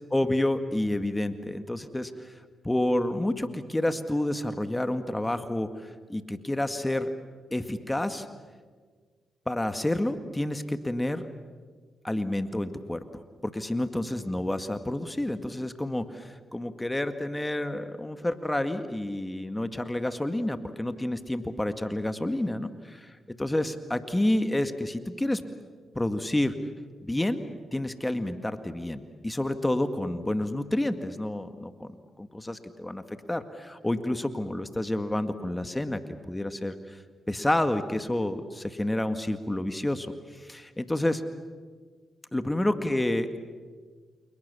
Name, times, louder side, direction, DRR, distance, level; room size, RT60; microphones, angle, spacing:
voice 1, 0.1-2.3 2.6-7.1 7.5-8.3 9.5-11.3 12.0-25.4 25.9-26.5 27.0-27.4 27.7-33.0 33.3-36.0 36.3-37.0 37.3-41.2 42.3-43.4, left 1 dB, 15° left, 9 dB, 2.1 m, -29 dB
29.5 x 28.5 x 7.1 m, 1.6 s
supercardioid pair, 50°, 0 cm